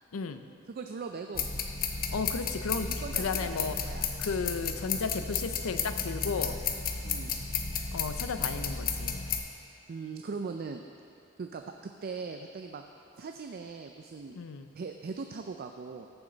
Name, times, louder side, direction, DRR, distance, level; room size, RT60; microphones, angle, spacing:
voice 1, 0.1-0.4 2.1-2.9 3.2-3.8 4.2-6.6 7.9-9.3 14.4-14.7, left 5 dB, 80° left, 9 dB, 0.5 m, -34 dB
voice 2, 0.7-1.5 2.8-4.1 5.1-5.3 7.0-7.4 9.9-10.8 11.4-12.8 13.2-14.4 14.7-16.1, right 4 dB, 45° right, 5 dB, 0.4 m, -40 dB
sound 1, 1.3-9.4, left 6 dB, 45° left, 0.7 m, -33 dB
14.0 x 7.2 x 3.9 m, 2.6 s
head